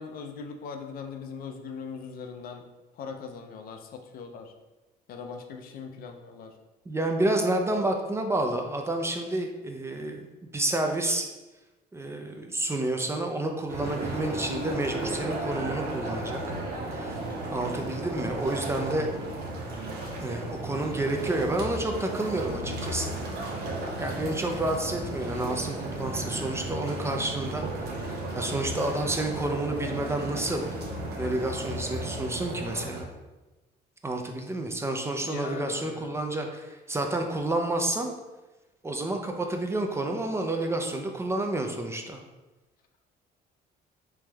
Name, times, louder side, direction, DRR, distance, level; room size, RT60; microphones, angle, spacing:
voice 1, 0.0-2.7 2.9-4.5 5.1-6.6 35.2-36.1, left 5 dB, 60° left, 5 dB, 0.5 m, -40 dB
voice 2, 6.9-10.3 10.5-11.3 11.9-16.4 16.9-17.2 17.5-19.1 20.2-23.2 23.6-27.6 28.3-30.8 31.2-33.1 34.0-38.1 38.8-42.2, right 2 dB, 15° right, 3 dB, 0.4 m, -29 dB
sound 1, 13.7-33.0, right 1 dB, 75° right, 0.8 m, -34 dB
3.4 x 3.1 x 3.3 m, 1.1 s
cardioid pair, 110°, 17 cm